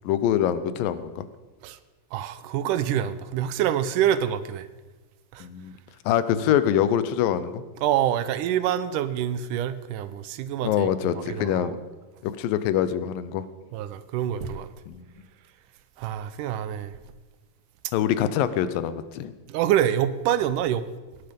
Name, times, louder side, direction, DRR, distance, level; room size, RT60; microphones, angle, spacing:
voice 1, 0.0-1.2 5.4-5.7 6.1-7.6 10.6-11.8 12.2-13.5 14.9-15.1 17.9-19.3, left 10 dB, 90° left, 13 dB, 2.5 m, -24 dB
voice 2, 2.1-4.7 5.3-5.5 7.8-11.7 13.7-14.7 16.0-16.9 19.5-20.9, right 10 dB, 80° right, 14 dB, 2.1 m, -26 dB
18.5 x 11.5 x 5.2 m, 1.2 s
omnidirectional pair, 3.9 m